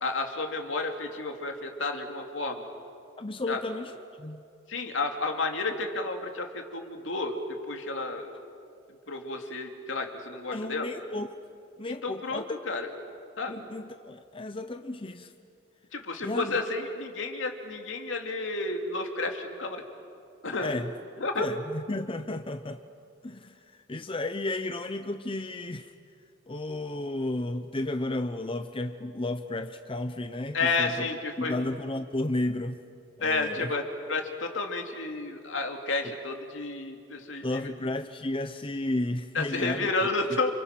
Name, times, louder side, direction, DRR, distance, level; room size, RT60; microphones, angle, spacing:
voice 1, 0.0-2.7 3.5-3.6 4.7-7.4 7.7-8.3 9.1-10.9 11.9-12.9 13.4-13.6 15.9-19.8 20.4-20.7 21.2-21.5 30.5-31.5 33.2-37.7 39.3-40.5, left 3 dB, 75° left, 4 dB, 2.7 m, -31 dB
voice 2, 3.2-3.9 4.2-4.4 10.5-11.3 11.8-12.5 13.5-15.3 16.2-16.6 20.6-20.9 21.4-22.8 23.2-23.6 23.9-25.9 26.5-31.1 31.4-32.8 33.2-33.7 37.4-39.9, left 2 dB, 25° left, 8 dB, 0.7 m, -33 dB
30.0 x 28.5 x 6.0 m, 2.5 s
head